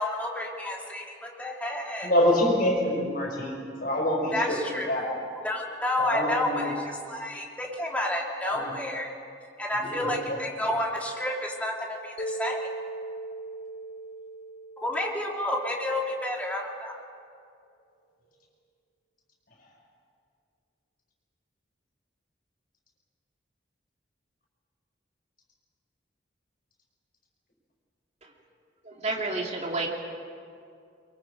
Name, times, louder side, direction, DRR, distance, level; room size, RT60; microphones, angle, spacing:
voice 1, 0.0-2.1 4.3-4.9 5.4-6.7 7.1-9.1 9.6-12.7 14.8-17.0, left 1 dB, 10° left, -2 dB, 2.7 m, -30 dB
voice 2, 2.0-5.2 6.0-6.7 8.4-8.8 9.7-10.6, left 1 dB, 50° left, -2 dB, 5.9 m, -27 dB
Mallet percussion, 12.2-16.3, right 2 dB, 35° left, 0.7 m, -39 dB
voice 3, 28.8-29.9, right 2 dB, 40° right, 0 dB, 2.7 m, -30 dB
24.0 x 23.5 x 5.3 m, 2.3 s
head